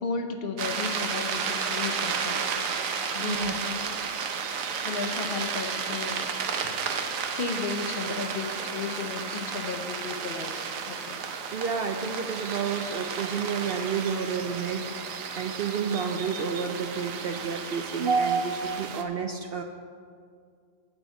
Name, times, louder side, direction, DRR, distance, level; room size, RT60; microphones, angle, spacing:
voice 1, 0.0-2.7 3.1-3.8 4.8-6.2 6.6-6.7 7.3-11.2, left 5 dB, 55° left, 5 dB, 0.8 m, -34 dB
sound 1, 0.6-19.0, right 6 dB, 85° right, 1.2 m, -32 dB
voice 2, 3.2-3.5 6.6-6.7 11.5-14.9 15.4-19.6, right 6 dB, 60° right, 5 dB, 0.6 m, -30 dB
11.0 x 4.4 x 7.9 m, 2.2 s
omnidirectional pair, 1.4 m